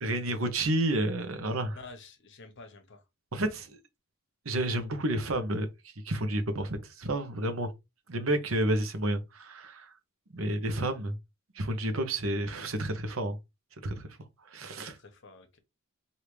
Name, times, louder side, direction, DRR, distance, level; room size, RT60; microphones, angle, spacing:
voice 1, 0.0-1.8 3.3-3.8 4.4-5.7 6.0-7.7 8.1-9.9 10.3-11.2 11.5-13.4 13.8-14.2 14.5-15.0, right 1 dB, 85° right, 0.9 m, -30 dB
voice 2, 1.7-3.0 14.8-15.6, left 3 dB, 60° left, 1.0 m, -50 dB
5.0 x 2.7 x 3.1 m
head